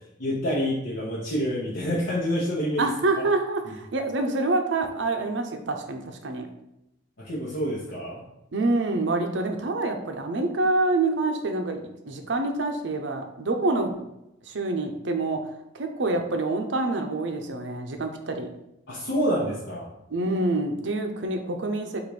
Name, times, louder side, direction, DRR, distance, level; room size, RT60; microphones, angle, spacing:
voice 1, 0.2-2.9 7.2-8.2 18.9-19.9, equal, 65° left, -6 dB, 0.9 m, -27 dB
voice 2, 2.8-6.5 8.5-11.8 12.1-13.9 14.5-15.4 15.7-18.5 20.1-22.0, right 2 dB, 70° right, 5 dB, 0.6 m, -26 dB
4.1 x 2.6 x 4.7 m, 0.85 s
head